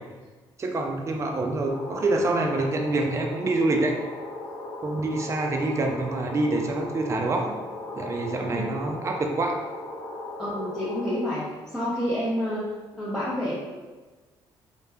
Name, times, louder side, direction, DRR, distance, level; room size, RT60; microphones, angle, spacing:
voice 1, 0.6-4.0 4.8-7.6 8.0-9.6, right 2 dB, 30° right, 2 dB, 0.4 m, -26 dB
sound 1, 1.7-11.2, left 2 dB, 50° left, 0.8 m, -37 dB
voice 2, 10.4-11.4 11.7-12.7 13.0-13.5, equal, 5° left, -9 dB, 0.7 m, -28 dB
2.9 x 2.1 x 2.3 m, 1.3 s
supercardioid pair, 70°, 10 cm